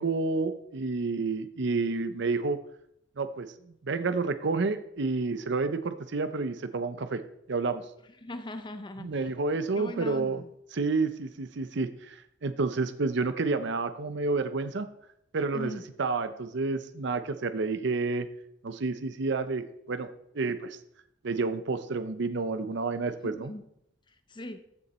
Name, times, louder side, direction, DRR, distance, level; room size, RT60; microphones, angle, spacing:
voice 1, 0.0-2.6 3.2-3.5 3.8-7.2 7.5-7.8 9.0-10.4 10.7-14.9 15.3-18.3 18.6-20.1 20.3-20.8 21.2-23.5, right 3 dB, 65° right, 10 dB, 0.7 m, -30 dB
voice 2, 8.2-9.1 9.8-10.5 15.5-15.8 23.2-23.6 24.3-24.6, left 1 dB, 25° left, 9 dB, 0.6 m, -39 dB
14.0 x 6.9 x 4.3 m, 0.75 s
head